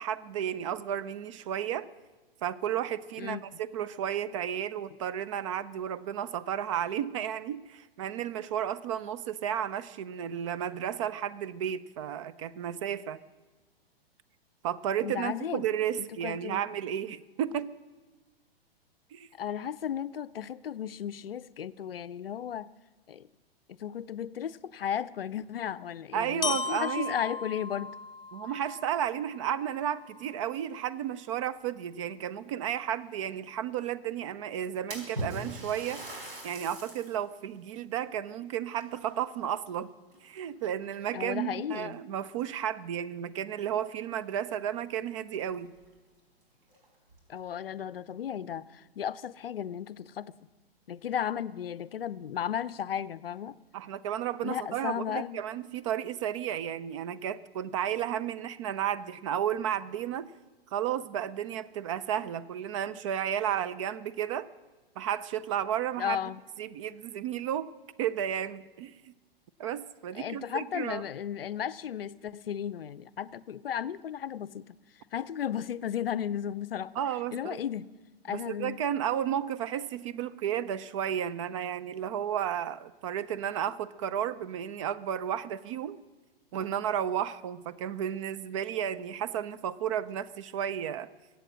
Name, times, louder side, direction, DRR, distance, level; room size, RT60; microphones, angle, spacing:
voice 1, 0.0-1.9 2.4-13.2 14.6-17.7 19.1-19.3 26.1-27.1 28.3-36.0 36.4-39.9 40.2-45.7 53.7-60.3 60.7-64.5 65.0-66.2 66.6-67.7 68.0-69.1 69.6-71.0 77.0-77.6 78.3-86.0 86.5-91.1, right 10 dB, 30° right, 15 dB, 0.5 m, -33 dB
voice 2, 15.0-15.7 16.0-16.6 19.4-22.7 23.1-23.3 23.7-28.0 41.1-42.0 47.3-50.3 50.9-53.6 54.4-55.4 66.0-66.4 70.1-74.7 75.1-76.9 77.3-77.9 78.2-78.8, left 9 dB, 70° left, 18 dB, 0.5 m, -35 dB
Glockenspiel, 26.4-30.4, left 4 dB, 15° left, 0.8 m, -37 dB
Splash splatter, 34.9-37.2 37.7-37.8 38.7-39.8 40.1-40.6 41.4-41.5 41.9-42.0 44.2-44.3 44.6-44.7 45.3-45.4 45.8-45.9 46.6-47.2, right 1 dB, 65° right, 4.3 m, -40 dB
22.5 x 8.3 x 6.3 m, 1.2 s
figure-of-eight pair, 110°, 30 cm